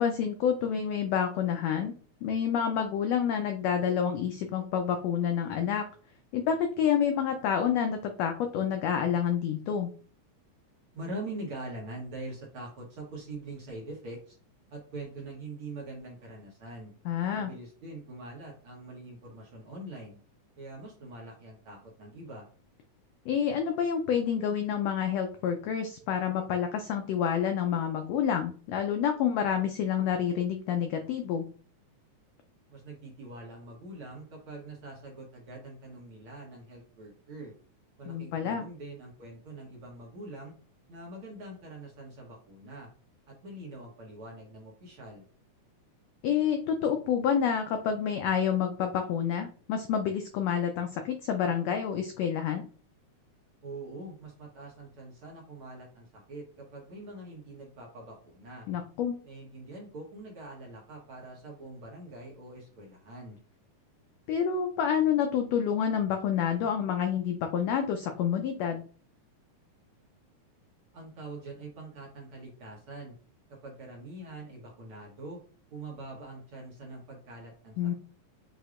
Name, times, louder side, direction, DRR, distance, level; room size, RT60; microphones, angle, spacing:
voice 1, 0.0-1.9 2.2-5.9 6.3-9.9 17.0-17.5 23.3-31.4 38.1-38.6 46.2-52.6 58.7-59.2 64.3-68.8 77.8-77.9, left 8 dB, 90° left, 5 dB, 1.4 m, -28 dB
voice 2, 10.9-14.4 14.7-16.9 17.3-20.2 20.6-22.5 32.7-37.5 38.0-40.5 40.9-42.9 43.3-45.3 53.6-58.7 59.2-63.4 70.9-73.1 73.6-75.4 75.7-77.9, right 2 dB, 60° right, -2 dB, 1.6 m, -44 dB
6.1 x 2.7 x 2.4 m, 0.41 s
omnidirectional pair, 3.5 m